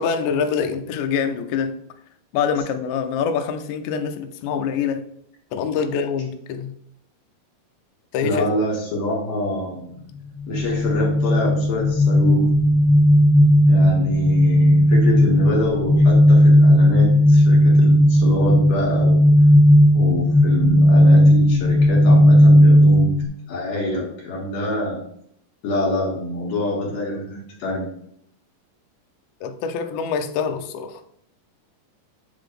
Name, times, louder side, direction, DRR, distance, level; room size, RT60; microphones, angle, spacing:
voice 1, 0.0-1.7 2.3-5.0 5.5-6.7 8.1-8.4 29.4-31.0, left 6 dB, 90° left, 1.7 m, -25 dB
voice 2, 8.2-10.0 10.5-12.5 13.7-19.2 19.9-23.1 23.5-25.0 25.6-27.9, left 1 dB, 60° left, 2.6 m, -26 dB
sound 1, 10.5-23.3, equal, 35° left, 1.7 m, -14 dB
7.4 x 3.9 x 3.3 m
omnidirectional pair, 3.9 m